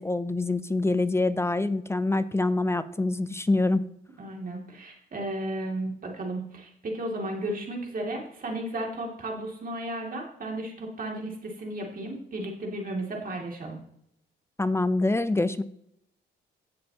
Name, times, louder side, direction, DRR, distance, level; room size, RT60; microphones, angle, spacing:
voice 1, 0.0-3.8 14.6-15.6, left 2 dB, 15° left, 14 dB, 0.5 m, -25 dB
voice 2, 4.2-13.8, right 1 dB, 45° right, 0 dB, 2.6 m, -34 dB
16.0 x 6.6 x 2.9 m, 0.74 s
cardioid pair, 90°, 20 cm